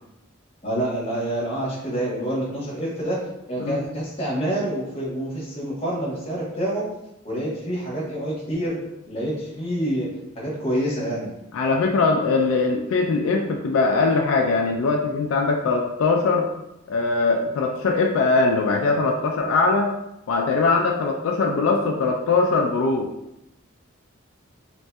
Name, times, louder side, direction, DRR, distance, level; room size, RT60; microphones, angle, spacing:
voice 1, 0.6-3.2 3.5-6.8 7.2-8.7 9.1-10.1 10.3-11.3, right 1 dB, 30° left, -6 dB, 1.0 m, -27 dB
voice 2, 11.5-16.5 16.9-19.9 20.3-23.1, left 3 dB, 75° left, 2 dB, 0.3 m, -21 dB
3.1 x 2.6 x 2.2 m, 0.88 s
head